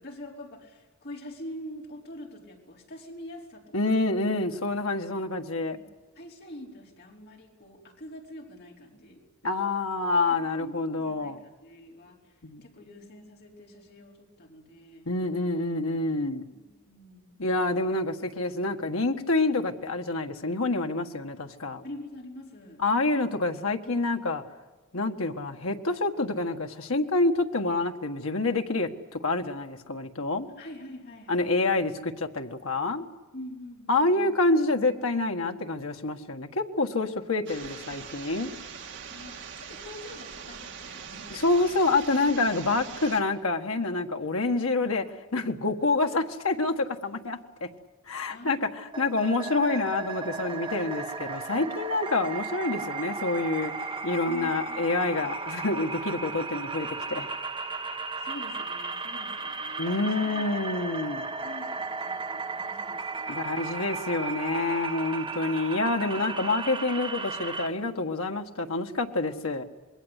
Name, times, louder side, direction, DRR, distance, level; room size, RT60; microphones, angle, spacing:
voice 1, 0.0-4.1 5.7-5.9 6.1-9.2 10.3-15.1 16.5-17.4 21.8-22.8 30.6-31.6 33.3-34.3 39.1-41.3 48.3-49.3 54.3-55.2 58.2-60.5 61.4-63.6, left 1 dB, 50° left, 0 dB, 4.7 m, -45 dB
voice 2, 3.7-5.8 9.4-11.4 12.4-12.6 15.0-16.4 17.4-21.8 22.8-24.4 24.9-30.5 31.3-33.0 33.9-38.5 41.3-45.0 45.3-47.7 48.1-53.7 54.0-57.3 59.8-61.2 63.3-69.6, left 2 dB, 75° left, 5 dB, 1.7 m, -27 dB
sound 1, 37.5-43.2, right 6 dB, 60° right, 2.6 m, -42 dB
sound 2, 48.9-67.7, right 4 dB, 25° right, 1.5 m, -35 dB
26.5 x 21.5 x 8.3 m, 1.3 s
head